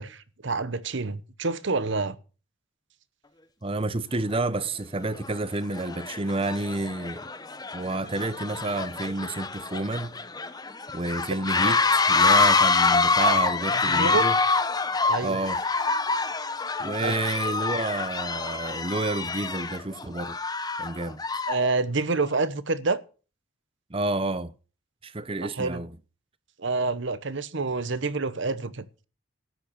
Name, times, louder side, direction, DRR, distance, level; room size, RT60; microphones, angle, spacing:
voice 1, 0.0-2.2 11.3-11.4 11.7-11.8 13.9-14.3 15.1-15.4 17.0-17.1 21.5-23.0 25.6-25.8 26.6-28.8, right 3 dB, 60° right, 0.9 m, -27 dB
voice 2, 3.6-7.3 7.7-10.2 10.9-14.4 15.2-15.6 16.8-20.4 20.8-21.2 23.9-24.5 25.0-26.0, right 2 dB, 25° right, 0.7 m, -30 dB
sound 1, 4.3-4.4 5.1-5.4 5.7-21.7, left 4 dB, 20° left, 0.8 m, -26 dB
13.0 x 8.7 x 6.9 m
head